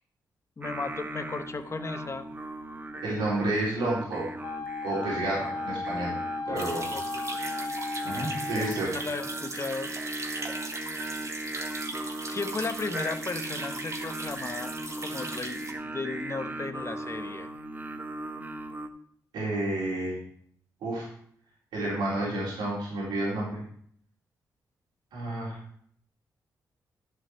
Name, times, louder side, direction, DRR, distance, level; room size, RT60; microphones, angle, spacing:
voice 1, 0.6-2.3 6.5-7.4 8.7-10.2 12.3-17.5, left 4 dB, 35° left, 9 dB, 1.1 m, -36 dB
Singing, 0.6-18.9, right 1 dB, 25° right, 1.0 m, -38 dB
voice 2, 3.0-4.3 4.8-6.1 6.5-6.9 8.0-8.9 19.3-20.2 20.8-21.1 21.7-23.6 25.1-25.6, right 1 dB, 85° right, -6 dB, 3.9 m, -30 dB
Wind instrument woodwind instrument, 4.4-8.8, left 3 dB, 70° left, 0.8 m, -35 dB
sound 1, 6.6-15.7, right 2 dB, 40° right, 2.1 m, -39 dB
11.5 x 5.9 x 4.6 m, 0.63 s
supercardioid pair, 50°, 8 cm